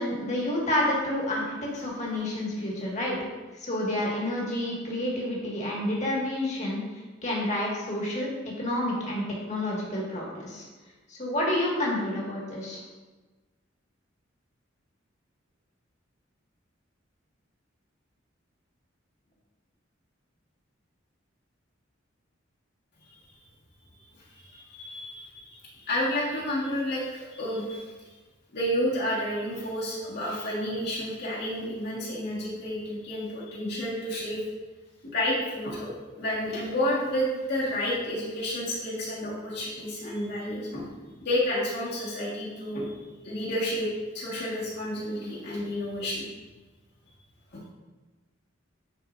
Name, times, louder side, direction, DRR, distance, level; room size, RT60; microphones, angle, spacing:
voice 1, 0.0-3.2 3.6-6.8 7.2-8.3 8.6-10.6 11.1-12.8, left 1 dB, 35° left, -4 dB, 1.7 m, -29 dB
voice 2, 24.3-27.9 28.5-34.4 35.0-35.9 36.2-40.9 41.2-43.9 44.1-46.3 47.5-47.6, left 1 dB, 55° left, -7 dB, 1.6 m, -30 dB
9.6 x 4.5 x 2.5 m, 1.2 s
head